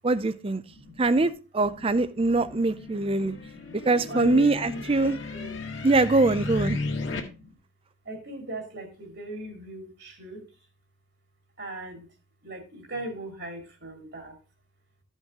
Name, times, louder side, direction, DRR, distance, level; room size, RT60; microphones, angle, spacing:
voice 1, 0.0-0.6 1.0-3.4 3.9-5.2 5.8-6.8, right 2 dB, 30° right, 0.5 m, -23 dB
voice 2, 0.7-1.3 1.6-5.9 6.6-7.5 8.0-10.4 11.6-12.1 12.4-14.4, right 1 dB, 60° right, 2.4 m, -40 dB
sound 1, 2.2-7.2, left 3 dB, 70° left, 1.8 m, -35 dB
13.0 x 5.4 x 3.6 m
head